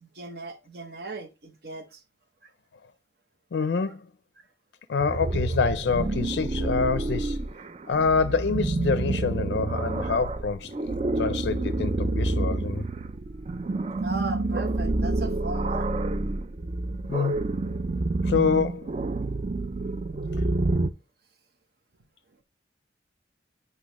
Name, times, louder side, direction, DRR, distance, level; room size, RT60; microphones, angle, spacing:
voice 1, 0.0-2.0 14.0-15.9, right 2 dB, 60° right, 0.9 m, -37 dB
voice 2, 3.5-4.1 4.9-7.4 7.9-10.9 11.2-12.9 17.1-17.5 18.2-18.9, left 5 dB, 70° left, 0.4 m, -26 dB
sound 1, 5.0-20.9, right 2 dB, 35° right, 0.4 m, -28 dB
8.3 x 5.4 x 2.9 m
head